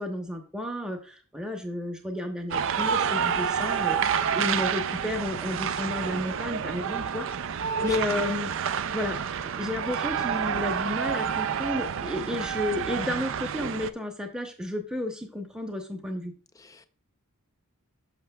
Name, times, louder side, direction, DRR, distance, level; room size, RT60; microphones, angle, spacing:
voice 1, 0.0-4.0 4.3-7.2 7.8-8.5 8.9-9.2 9.6-16.3, left 1 dB, 5° right, 0.8 m, -32 dB
sound 1, 2.5-13.9, right 7 dB, 60° right, 0.4 m, -29 dB
voice 2, 7.9-8.2 16.6-16.9, left 3 dB, 15° left, 0.5 m, -44 dB
12.0 x 6.0 x 2.3 m
head